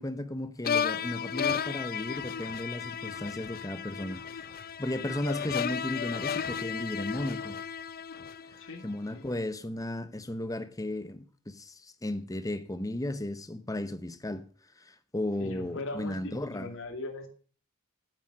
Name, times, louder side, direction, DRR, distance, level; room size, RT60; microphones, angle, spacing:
voice 1, 0.0-4.4 4.8-7.6 8.5-14.4 14.8-16.7, left 1 dB, 15° left, 0.9 m, -35 dB
sound 1, 0.6-8.8, left 7 dB, 45° left, 0.6 m, -34 dB
voice 2, 8.6-9.4 15.3-17.3, left 2 dB, 60° left, 2.5 m, -40 dB
9.6 x 9.0 x 6.3 m
head